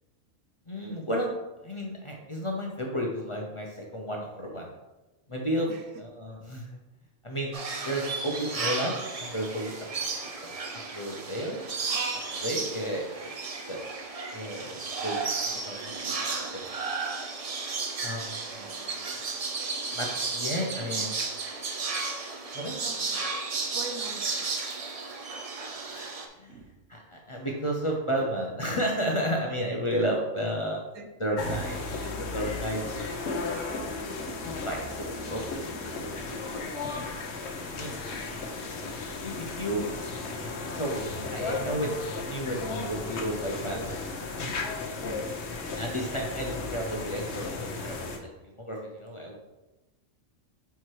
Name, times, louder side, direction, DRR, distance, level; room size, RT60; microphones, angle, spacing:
voice 1, 0.7-1.3 1.6-4.7 5.3-5.7 6.0-6.8 7.2-7.5 7.8-9.9 10.4-10.5 10.9-11.8 12.4-13.3 13.7-13.8 14.3-16.2 16.5-16.6 18.0-18.6 19.9-21.1 22.5-22.8 25.8-26.6 26.9-30.8 31.2-31.9 32.2-33.1 34.6-36.8 37.7-37.9 39.2-39.8 40.3-41.0 41.3-44.5 45.8-49.4, equal, 30° left, -1 dB, 0.6 m, -33 dB
sound 1, 7.5-26.3, right 4 dB, 45° right, 0.5 m, -33 dB
voice 2, 11.6-12.0 18.5-18.7 20.6-21.1 22.8-23.2 23.7-24.5 26.2-26.7 30.9-31.1 31.6-32.2 33.5-34.5 38.1-38.4, right 4 dB, 80° right, 4 dB, 1.2 m, -46 dB
sound 2, 31.4-48.2, left 3 dB, 60° left, 1.0 m, -35 dB
4.6 x 4.5 x 4.6 m, 1.1 s
omnidirectional pair, 1.3 m